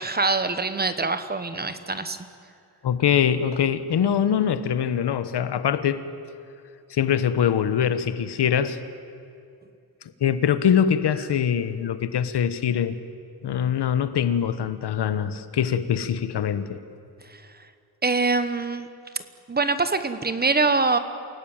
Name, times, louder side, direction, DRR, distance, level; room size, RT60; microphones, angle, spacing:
voice 1, 0.0-2.2 17.3-17.4 18.0-18.9 19.5-21.0, right 3 dB, 25° right, 11 dB, 1.1 m, -24 dB
voice 2, 2.8-6.0 6.9-8.8 10.2-13.0 13.4-16.8, left 8 dB, 75° left, 12 dB, 1.3 m, -23 dB
28.5 x 17.5 x 9.0 m, 2.5 s
wide cardioid pair, 165°, 41 cm